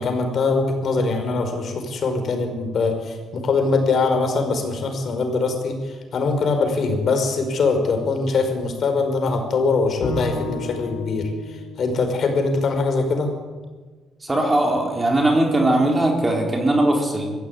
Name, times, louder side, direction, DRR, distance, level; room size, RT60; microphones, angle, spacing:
voice 1, 0.0-13.3, left 3 dB, 50° left, 5 dB, 5.4 m, -22 dB
Bowed string instrument, 10.0-13.3, left 3 dB, 75° left, 3.8 m, -34 dB
voice 2, 14.2-17.3, right 1 dB, 20° right, 1 dB, 4.5 m, -19 dB
22.5 x 15.5 x 9.7 m, 1.4 s
cardioid pair, 120°, 0 cm